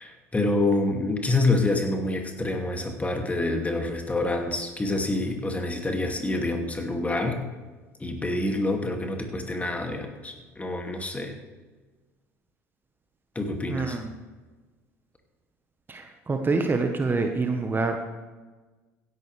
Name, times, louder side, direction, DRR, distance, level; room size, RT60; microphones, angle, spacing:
voice 1, 0.0-7.4 8.0-11.3 13.3-14.0, left 2 dB, 15° left, 3 dB, 2.4 m, -27 dB
voice 2, 13.7-14.1 15.9-18.0, right 3 dB, 25° right, 5 dB, 1.3 m, -26 dB
16.0 x 11.0 x 3.4 m, 1.3 s
hypercardioid pair, 65°, 8 cm